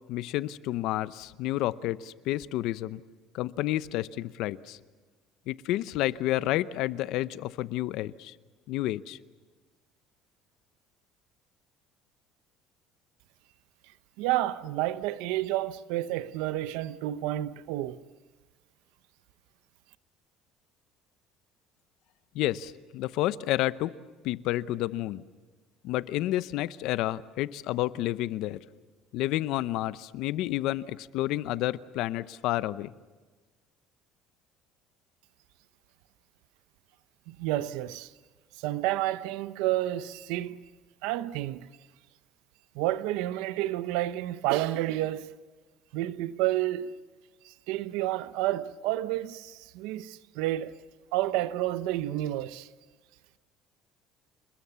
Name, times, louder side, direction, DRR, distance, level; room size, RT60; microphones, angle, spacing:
voice 1, 0.1-3.0 3.3-4.8 5.5-8.3 8.7-9.2 22.3-23.9 24.2-25.2 25.8-28.6 29.1-32.9, left 15 dB, 70° left, 0.8 m, -30 dB
voice 2, 14.2-18.0 37.3-38.1 38.6-40.6 41.0-41.7 42.7-45.4 45.9-47.0 47.4-50.8 51.1-52.7, right 15 dB, 90° right, 0.8 m, -30 dB
28.5 x 21.0 x 7.0 m
cardioid pair, 135°, 0 cm